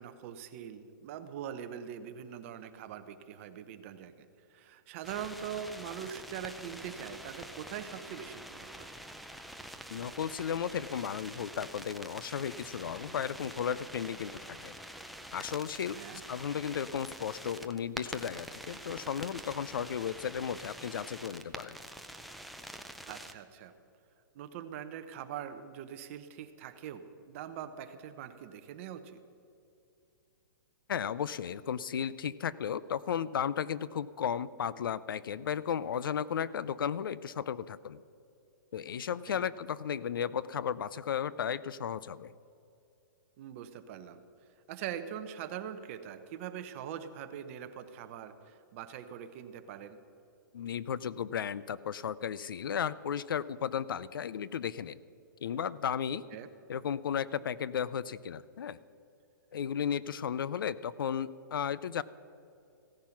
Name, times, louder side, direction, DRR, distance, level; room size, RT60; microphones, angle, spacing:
voice 1, 0.0-8.9 15.9-16.2 23.0-23.7 24.3-29.2 39.1-39.4 43.4-44.2 44.7-50.0 56.3-56.5, right 9 dB, 40° right, 10 dB, 0.9 m, -43 dB
sound 1, 5.0-23.3, equal, ahead, 0.5 m, -46 dB
voice 2, 9.9-14.7 15.3-21.8 30.9-38.0 38.7-42.3 50.5-55.0 55.4-56.2 56.7-58.8 59.5-62.0, left 8 dB, 85° left, 18 dB, 0.5 m, -34 dB
15.5 x 10.5 x 5.9 m, 2.7 s
hypercardioid pair, 155°, 11 cm